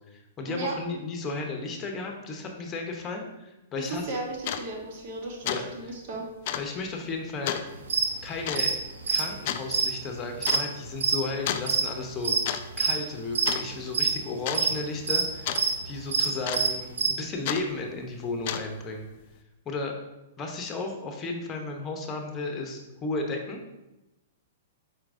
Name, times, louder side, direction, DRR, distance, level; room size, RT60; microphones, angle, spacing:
voice 1, 0.1-4.1 5.4-5.6 6.5-7.6 8.2-8.7 9.1-12.4 12.8-19.1 19.7-19.9 20.4-23.6, left 3 dB, 25° left, 3 dB, 0.8 m, -34 dB
voice 2, 3.8-6.3, right 3 dB, 55° right, 1 dB, 1.1 m, -35 dB
sound 1, 4.0-4.1 4.4-4.7 5.0-5.2 5.5-5.7 5.9-6.0 6.5-6.7 7.5-7.7 8.5-8.7 9.5-9.6 10.5-10.7 11.5-11.7 12.2-12.6 12.9-13.1 13.4-14.0 14.5-14.6 15.5-15.7 16.5-16.9 17.4-17.7 18.3-18.8, left 10 dB, 55° left, 0.3 m, -31 dB
sound 2, 7.9-8.1 8.5-8.7 9.0-11.2 11.5-12.4 12.7-13.0 13.3-14.1 14.5-14.7 15.1-15.7 16.0-17.1, right 5 dB, 75° right, 0.6 m, -25 dB
4.6 x 4.3 x 2.6 m, 0.98 s
hypercardioid pair, 125°, 0 cm